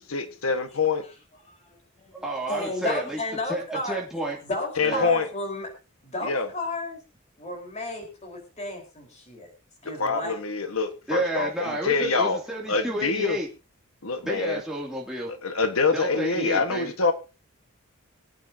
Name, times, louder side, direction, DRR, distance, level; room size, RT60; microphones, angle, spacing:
voice 1, 0.1-1.0 4.8-5.3 6.2-6.5 10.0-12.4 12.7-13.4 14.0-14.6 15.4-17.1, left 4 dB, 85° left, 1.5 m, -25 dB
voice 2, 1.5-2.1 2.5-4.0 4.4-5.7 6.0-7.0 7.4-9.5 9.8-10.3, left 2 dB, 35° left, 4.4 m, -33 dB
voice 3, 2.2-3.2 3.5-4.4 4.8-5.1 11.1-13.5 14.2-15.3 15.9-16.9, right 1 dB, 5° right, 2.7 m, -30 dB
25.0 x 8.6 x 2.8 m
head